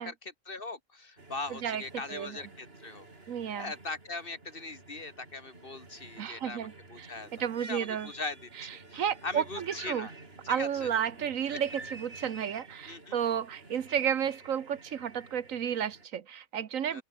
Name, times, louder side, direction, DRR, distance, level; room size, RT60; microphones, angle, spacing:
voice 1, 0.0-3.1 3.6-6.6 6.9-7.3 7.7-10.1 10.4-10.9 12.9-13.2 16.9-17.0, left 3 dB, 40° left, 2.2 m, -40 dB
sound 1, 1.2-16.1, right 2 dB, 45° right, 3.5 m, -50 dB
voice 2, 1.5-1.8 2.1-2.4 3.3-3.7 6.2-7.1 7.4-8.1 8.6-10.1 10.5-17.0, right 8 dB, 75° right, 1.4 m, -32 dB
open air
omnidirectional pair, 1.4 m